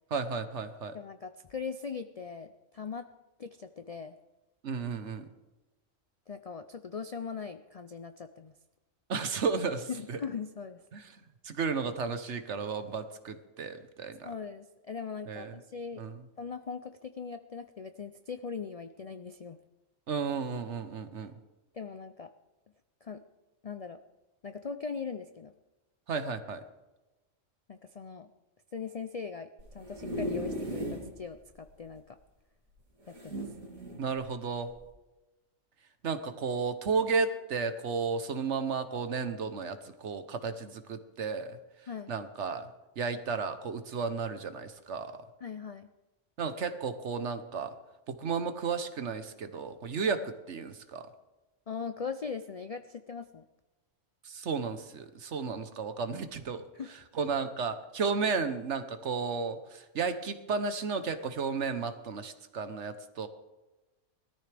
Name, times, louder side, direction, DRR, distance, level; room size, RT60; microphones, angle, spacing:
voice 1, 0.1-1.0 4.6-5.3 9.1-10.2 10.9-11.1 11.4-14.3 15.3-15.6 16.0-16.2 20.1-21.3 26.1-26.6 34.0-34.7 36.0-41.6 42.1-42.7 43.0-45.2 46.4-47.7 48.1-51.1 54.2-56.6 57.1-63.3, right 5 dB, 60° right, 10 dB, 1.2 m, -33 dB
voice 2, 0.9-3.1 3.4-4.2 6.3-8.5 9.9-10.8 14.2-16.0 16.4-19.6 21.7-22.3 23.0-23.2 23.6-24.0 24.4-25.5 27.7-28.3 28.7-32.2 33.1-33.4 41.9-42.1 45.4-45.9 51.7-53.4 56.7-56.9, left 5 dB, 55° left, 9 dB, 0.4 m, -40 dB
sound 1, 29.6-31.1 31.6-31.7 31.9-32.0 33.1-34.0 34.7-34.9, equal, 90° right, 3.1 m, -36 dB
20.0 x 13.5 x 3.4 m, 1.1 s
omnidirectional pair, 1.4 m